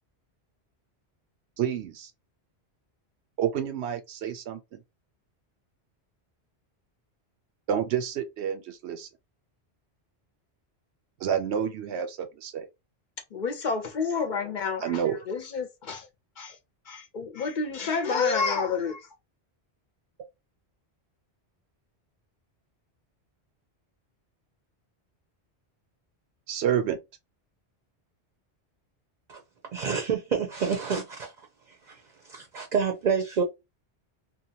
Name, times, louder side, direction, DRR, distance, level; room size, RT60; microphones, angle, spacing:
voice 1, 1.6-2.1 3.4-4.8 7.7-9.1 11.2-12.7 14.8-15.2 26.5-27.0, right 9 dB, 85° right, 0.9 m, -29 dB
voice 2, 13.3-15.0 15.3-16.1 16.4-16.6 16.9-19.1, left 5 dB, 55° left, 0.6 m, -29 dB
voice 3, 29.7-31.3 31.9-33.4, right 6 dB, 50° right, 0.6 m, -28 dB
2.7 x 2.2 x 2.7 m
omnidirectional pair, 1.1 m